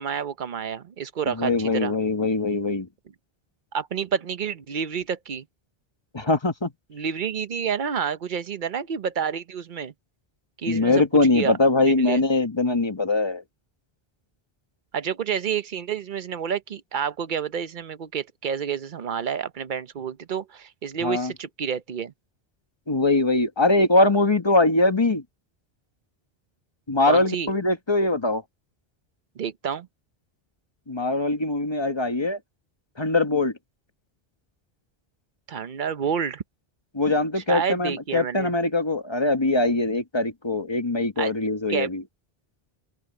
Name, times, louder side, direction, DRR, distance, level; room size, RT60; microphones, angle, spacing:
voice 1, 0.0-2.0 3.7-5.4 6.9-9.9 10.6-11.0 11.3-11.6 11.8-12.2 14.9-22.1 27.1-27.5 29.4-29.9 35.5-36.4 37.4-38.5 41.2-41.3 41.7-41.9, right 7 dB, 55° right, 0.9 m, -29 dB
voice 2, 1.3-2.9 6.1-6.7 10.7-13.4 21.0-21.3 22.9-25.2 26.9-28.4 30.9-32.4 33.0-33.5 36.9-42.0, left 2 dB, 25° left, 1.5 m, -22 dB
open air
omnidirectional pair, 1.0 m